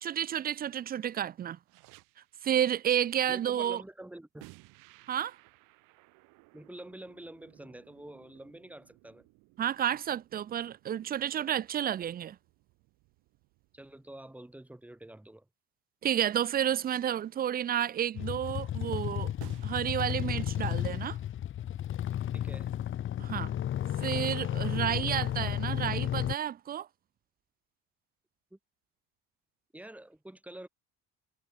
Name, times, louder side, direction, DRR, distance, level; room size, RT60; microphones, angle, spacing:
voice 1, 0.0-1.6 2.4-3.8 5.1-5.4 9.6-12.4 16.0-19.3 19.6-21.2 23.2-23.5 24.0-26.9, right 10 dB, 30° right, 0.7 m, -31 dB
sound 1, 1.6-2.5 4.4-15.3 16.6-17.5 19.4-20.5, right 24 dB, 80° right, 7.1 m, -59 dB
voice 2, 3.3-4.5 6.5-9.3 13.7-15.5 22.3-22.7 28.5-28.6 29.7-30.7, right 1 dB, 5° right, 6.3 m, -47 dB
sound 2, 18.1-26.3, left 11 dB, 40° left, 2.1 m, -33 dB
cardioid pair, 150°, 31 cm